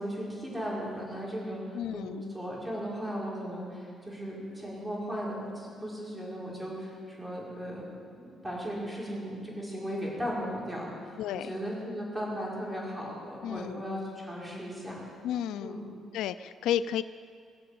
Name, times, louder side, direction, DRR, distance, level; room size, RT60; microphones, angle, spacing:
voice 1, 0.0-7.8 8.1-15.0 15.6-15.8, equal, 5° right, -6 dB, 5.3 m, -36 dB
voice 2, 1.7-2.2 11.2-11.5 13.4-13.8 15.2-15.8 16.1-17.0, left 10 dB, 85° left, 15 dB, 0.4 m, -32 dB
20.5 x 7.7 x 8.5 m, 2.3 s
cardioid pair, 120°, 0 cm